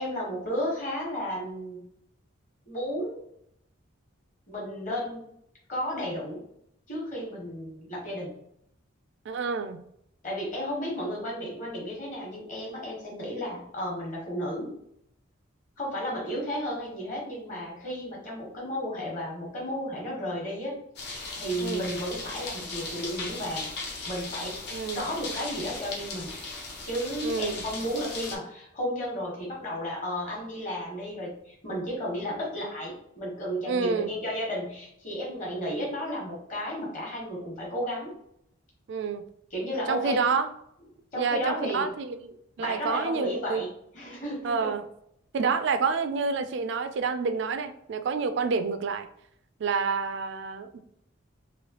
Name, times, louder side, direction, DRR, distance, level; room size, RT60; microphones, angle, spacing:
voice 1, 0.0-1.8 2.7-3.2 4.5-5.2 5.7-6.4 6.9-8.4 10.2-14.7 15.8-23.7 24.1-24.6 24.9-26.4 26.9-38.1 39.5-40.2 41.1-41.9 42.6-44.7, equal, 35° left, -3 dB, 1.2 m, -33 dB
voice 2, 9.3-9.8 21.6-21.9 24.7-25.1 27.2-27.6 33.7-34.1 38.9-39.2 39.9-40.5 41.2-43.6 44.4-44.8 45.3-49.1 49.6-50.8, right 5 dB, 55° right, 9 dB, 0.3 m, -28 dB
sound 1, 21.0-28.4, left 3 dB, 55° left, 0.7 m, -37 dB
3.2 x 2.6 x 2.9 m, 0.73 s
head